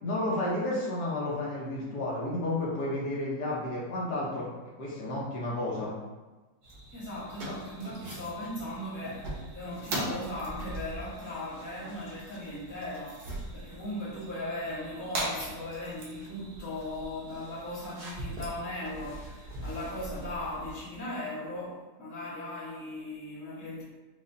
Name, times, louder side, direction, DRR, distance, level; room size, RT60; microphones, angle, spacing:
voice 1, 0.0-4.5 4.8-5.9, left 1 dB, 65° left, -5 dB, 1.3 m, -31 dB
driving away at night, 6.6-20.9, right 1 dB, 65° right, 1.4 m, -41 dB
voice 2, 6.9-13.3 13.5-23.8, left 1 dB, 15° left, -8 dB, 0.8 m, -38 dB
4.9 x 2.5 x 2.6 m, 1.2 s
omnidirectional pair, 1.9 m